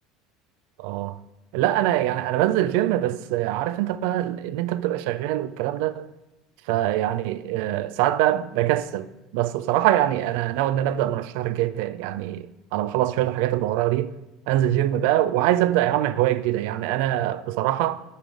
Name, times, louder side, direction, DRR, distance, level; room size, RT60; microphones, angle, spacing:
voice 1, 0.8-1.2 1.5-6.1 6.7-9.1 9.3-14.1 14.5-18.0, right 13 dB, 70° right, 0.4 m, -23 dB
8.8 x 5.1 x 4.7 m
hypercardioid pair, 80°, 0 cm